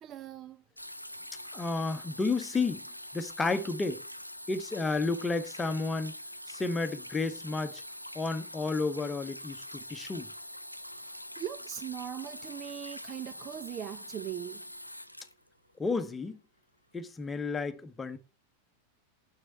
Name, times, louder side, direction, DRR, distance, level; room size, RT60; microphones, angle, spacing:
voice 1, 0.0-0.6 11.1-14.6, right 11 dB, 30° right, 0.4 m, -40 dB
sound 1, 0.8-16.1 17.1-17.2, left 1 dB, 90° left, 0.5 m, -44 dB
voice 2, 1.5-2.8 3.1-4.0 4.5-6.2 6.5-7.8 8.1-10.3 15.8-16.4 16.9-18.2, left 3 dB, 15° left, 1.0 m, -31 dB
6.7 x 6.6 x 7.6 m
figure-of-eight pair, 90°, 0 cm